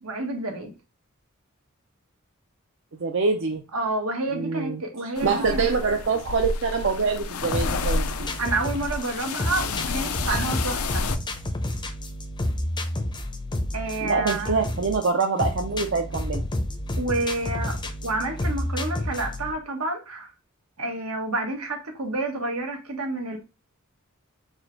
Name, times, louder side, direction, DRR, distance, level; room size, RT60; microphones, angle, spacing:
voice 1, 0.0-0.7 3.7-5.7 8.4-11.1 13.7-14.6 17.0-20.3 20.8-23.4, right 2 dB, 85° right, 1.4 m, -29 dB
voice 2, 3.0-3.6 4.3-4.8 5.2-8.1 10.3-10.5 14.0-16.4, right 4 dB, 60° right, 0.6 m, -25 dB
sound 1, 5.2-11.2, left 4 dB, 90° left, 0.5 m, -30 dB
sound 2, 7.5-19.5, left 1 dB, 20° left, 0.5 m, -30 dB
4.6 x 2.3 x 4.5 m
head